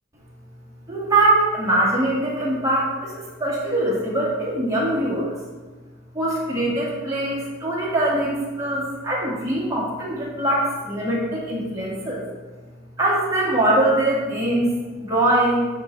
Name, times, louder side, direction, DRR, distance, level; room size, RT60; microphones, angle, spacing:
voice 1, 0.9-5.3 6.1-12.2 13.0-14.7 15.0-15.7, right 1 dB, 15° right, -6 dB, 2.1 m, -22 dB
9.7 x 4.7 x 3.3 m, 1.3 s
head